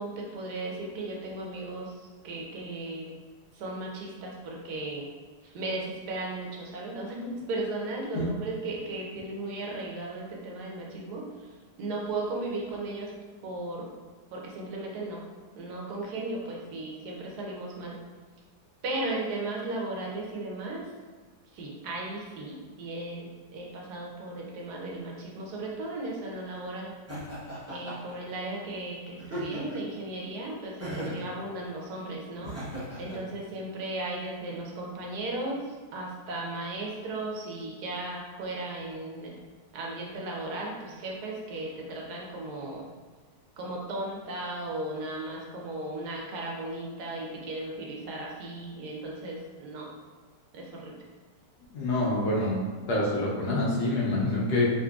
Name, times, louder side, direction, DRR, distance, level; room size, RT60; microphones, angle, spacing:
voice 1, 0.0-2.0 2.2-3.1 3.5-5.1 5.4-11.2 11.8-13.1 13.4-13.9 14.3-15.2 15.5-17.9 18.8-20.8 21.5-27.0 27.7-32.6 33.0-35.6 35.9-39.3 39.7-42.9 43.6-49.9 50.5-50.9, right 2 dB, 75° right, -2 dB, 1.2 m, -36 dB
Laughter, 27.1-28.1 29.2-29.9 30.8-31.3 32.4-33.2, right 1 dB, 20° right, 0.4 m, -37 dB
voice 2, 51.7-52.6 52.9-54.7, left 2 dB, 75° left, -4 dB, 1.4 m, -26 dB
3.7 x 2.9 x 2.3 m, 1.4 s
omnidirectional pair, 1.7 m